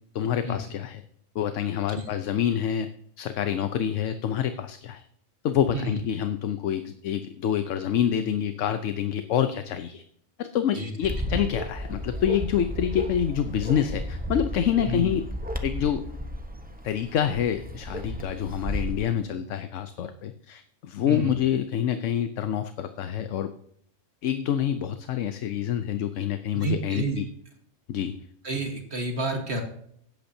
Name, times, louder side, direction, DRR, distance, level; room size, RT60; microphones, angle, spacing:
voice 1, 0.1-1.0 1.3-2.9 3.2-5.0 5.4-10.0 10.4-15.2 15.6-16.1 16.8-23.5 24.2-27.3 27.9-28.2, left 9 dB, 70° left, 9 dB, 1.0 m, -27 dB
Bark, 11.0-19.0, equal, 10° right, 0.7 m, -33 dB
voice 2, 26.5-27.2 28.4-29.6, right 2 dB, 55° right, 2 dB, 1.7 m, -29 dB
16.5 x 8.5 x 2.7 m, 0.68 s
omnidirectional pair, 1.4 m